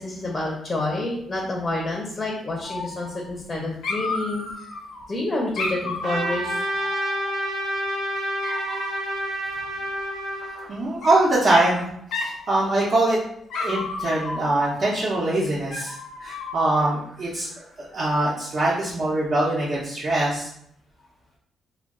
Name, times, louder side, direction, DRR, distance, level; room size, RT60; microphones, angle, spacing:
voice 1, 0.0-4.7 5.1-6.6 9.9-10.1, left 2 dB, 25° left, -1 dB, 0.5 m, -28 dB
Dog, 2.6-3.5 3.8-5.0 5.6-7.6 8.4-9.1 10.5-11.1 11.5-11.8 12.1-12.4 12.7-13.2 13.5-15.0 15.7-16.9, left 3 dB, 75° left, 0.5 m, -33 dB
Trumpet, 6.0-10.7, right 1 dB, 70° right, 0.7 m, -28 dB
voice 2, 10.7-11.9 12.1-13.2 13.6-20.5, right 2 dB, 40° right, -6 dB, 0.5 m, -23 dB
2.2 x 2.2 x 3.5 m, 0.70 s
cardioid pair, 130°, 0 cm